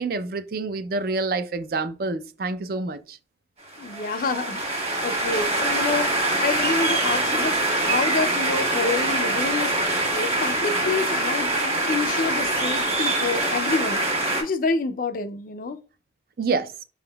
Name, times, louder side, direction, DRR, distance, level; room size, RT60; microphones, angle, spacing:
voice 1, 0.0-3.2 16.4-16.7, right 3 dB, 50° right, 0.4 m, -27 dB
sound 1, 3.7-14.4, right 2 dB, 35° right, 1.2 m, -24 dB
voice 2, 3.8-14.0 14.4-15.8, left 4 dB, 50° left, 0.4 m, -28 dB
4.9 x 3.5 x 2.2 m
head